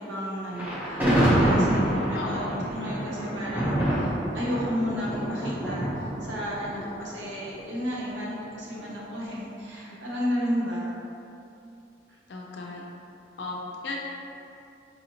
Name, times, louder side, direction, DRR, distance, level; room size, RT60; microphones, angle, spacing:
voice 1, 0.0-10.9 12.1-12.2, equal, 85° right, -5 dB, 0.8 m, -32 dB
Thunder, 0.5-7.7, right 1 dB, 10° right, 0.6 m, -26 dB
voice 2, 2.1-2.6 9.9-10.0 12.3-12.8 13.4-14.0, left 3 dB, 70° left, -2 dB, 0.4 m, -35 dB
4.2 x 2.8 x 2.8 m, 2.7 s
head